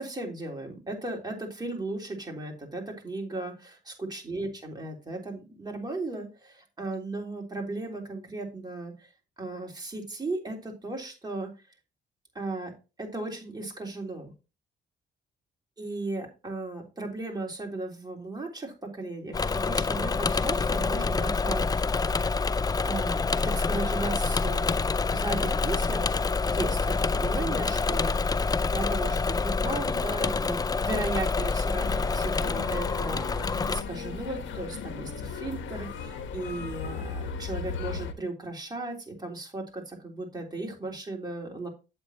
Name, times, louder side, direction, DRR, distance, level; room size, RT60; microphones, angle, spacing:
voice 1, 0.0-9.1 9.4-11.5 12.3-12.7 13.0-14.3 15.8-22.1 22.8-26.2 26.5-41.7, right 2 dB, 20° right, 0 dB, 3.6 m, -36 dB
Engine / Mechanisms, 19.3-33.8, left 4 dB, 20° left, 0.4 m, -27 dB
sound 1, 31.8-38.1, left 5 dB, 70° left, 1.3 m, -36 dB
8.6 x 7.9 x 3.0 m, 0.29 s
cardioid pair, 90°, 20 cm